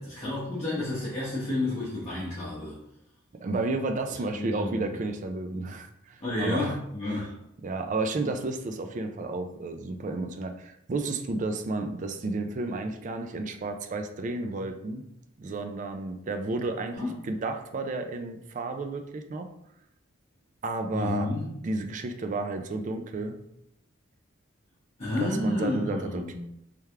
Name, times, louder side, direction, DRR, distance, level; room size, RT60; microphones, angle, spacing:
voice 1, 0.0-2.8 4.3-4.8 6.2-7.3 16.9-17.2 20.9-21.5 25.0-26.3, left 2 dB, 30° left, -9 dB, 1.0 m, -30 dB
voice 2, 3.4-6.8 7.6-15.0 15.4-19.5 20.6-21.3 21.6-23.4 25.2-26.3, right 3 dB, 40° right, 6 dB, 0.4 m, -32 dB
3.4 x 3.4 x 3.3 m, 0.80 s
head